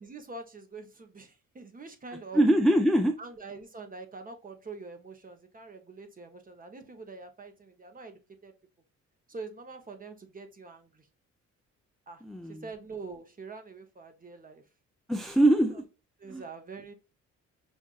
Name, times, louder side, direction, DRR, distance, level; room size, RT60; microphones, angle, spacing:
voice 1, 0.0-2.4 3.2-8.5 9.3-11.1 12.1-12.2 12.5-14.6 16.2-16.9, right 4 dB, 30° right, 7 dB, 0.9 m, -45 dB
voice 2, 2.3-3.1 12.2-12.6 15.1-15.8 16.3-16.4, right 1 dB, ahead, 4 dB, 0.5 m, -23 dB
5.4 x 2.5 x 2.4 m, 0.30 s
cardioid pair, 90°, 30 cm